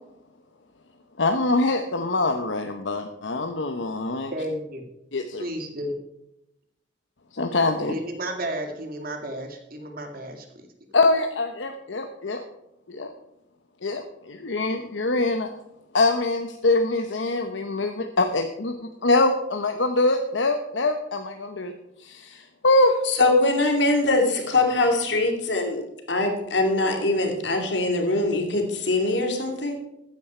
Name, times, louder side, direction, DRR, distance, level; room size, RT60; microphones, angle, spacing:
voice 1, 1.2-4.3 5.1-5.4 7.3-7.9 10.9-12.4 12.9-13.1 13.8-15.5 15.9-21.7 22.0-23.0, left 2 dB, 85° left, 5 dB, 1.0 m, -24 dB
voice 2, 4.3-4.8 5.4-5.9 7.8-10.7, right 1 dB, 50° right, 4 dB, 2.3 m, -32 dB
voice 3, 23.1-25.8 26.1-29.8, left 2 dB, 70° left, 3 dB, 2.6 m, -22 dB
15.0 x 9.7 x 4.5 m, 0.85 s
head